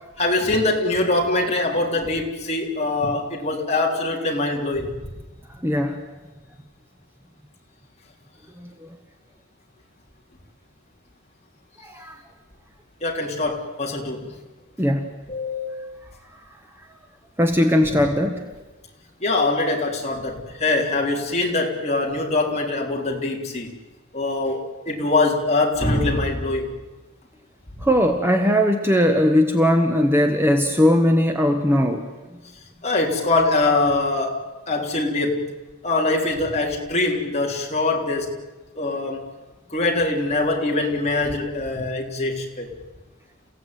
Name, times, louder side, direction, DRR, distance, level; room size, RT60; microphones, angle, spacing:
voice 1, 0.2-5.0 13.0-14.3 15.3-15.8 19.2-23.7 24.1-26.7 32.8-34.4 34.7-35.5 35.8-38.3 38.8-39.2 39.7-42.7, left 2 dB, 30° left, 0 dB, 3.6 m, -23 dB
voice 2, 5.6-6.0 11.9-12.1 14.8-15.0 17.4-18.4 27.8-32.1, equal, 10° right, 4 dB, 1.3 m, -19 dB
29.0 x 16.0 x 9.4 m, 1.1 s
head